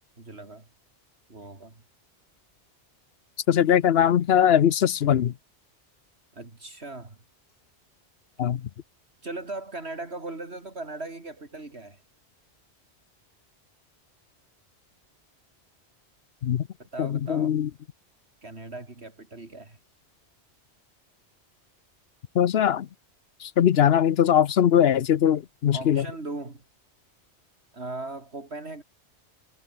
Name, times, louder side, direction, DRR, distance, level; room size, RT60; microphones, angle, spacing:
voice 1, 0.2-0.7 1.3-1.8 6.3-7.2 9.2-12.0 16.8-17.6 18.4-19.8 25.7-26.6 27.7-28.8, right 2 dB, 70° right, 3.6 m, -38 dB
voice 2, 3.5-5.3 8.4-8.6 16.4-16.6 17.0-17.7 22.3-22.9 23.4-26.0, left 9 dB, 65° left, 0.9 m, -21 dB
omnidirectional pair, 1.1 m